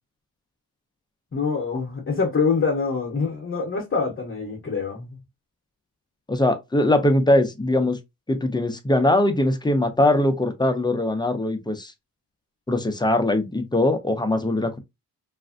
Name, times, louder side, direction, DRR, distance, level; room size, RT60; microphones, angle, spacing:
voice 1, 1.3-5.2, left 4 dB, 35° left, 0.7 m, -25 dB
voice 2, 6.3-8.0 8.3-11.9 12.7-14.8, left 1 dB, 10° left, 0.4 m, -21 dB
3.2 x 2.4 x 2.4 m
wide cardioid pair, 155°, 39 cm